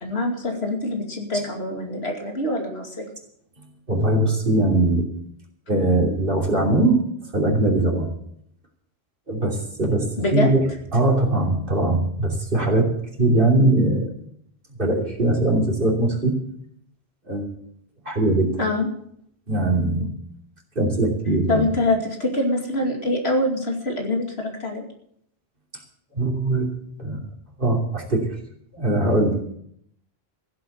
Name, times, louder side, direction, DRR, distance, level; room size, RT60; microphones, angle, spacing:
voice 1, 0.0-3.1 10.2-10.5 18.6-18.9 21.5-24.8, left 2 dB, 80° left, 2 dB, 2.9 m, -24 dB
voice 2, 3.9-5.1 5.7-7.0 7.3-8.1 9.3-10.6 10.9-12.9 13.2-14.1 14.8-16.3 17.3-17.5 18.0-18.5 19.5-20.1 20.7-21.7 26.2-26.7 27.0-27.2 27.6-28.3 28.7-29.3, right 2 dB, 55° right, 0 dB, 3.2 m, -21 dB
15.5 x 7.9 x 8.0 m, 0.69 s
omnidirectional pair, 1.1 m